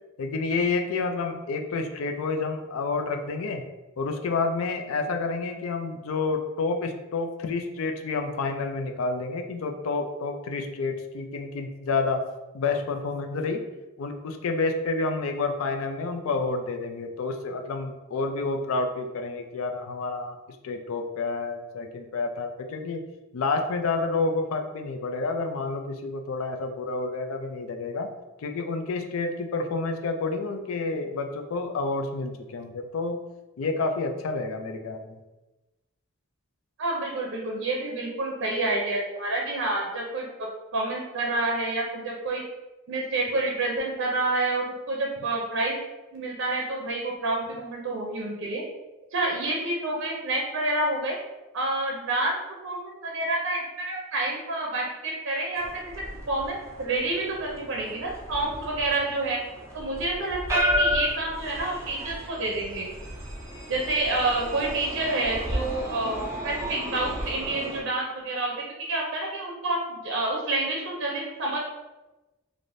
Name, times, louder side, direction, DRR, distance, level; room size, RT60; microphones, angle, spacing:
voice 1, 0.2-3.6 4.0-12.2 12.5-13.6 14.0-20.4 20.6-23.0 23.3-28.1 28.4-33.2 33.6-35.2, left 3 dB, 70° left, 5 dB, 0.4 m, -29 dB
voice 2, 36.8-42.4 42.9-45.8 46.1-48.6 49.1-51.2 51.5-52.4 52.6-55.9 56.3-59.4 59.7-62.9 63.7-71.6, right 2 dB, 65° right, -2 dB, 0.6 m, -28 dB
Dublin's Luas Tram Arriving and Departing, 55.6-67.8, equal, 15° right, 0.5 m, -33 dB
3.3 x 2.5 x 2.6 m, 1.1 s
head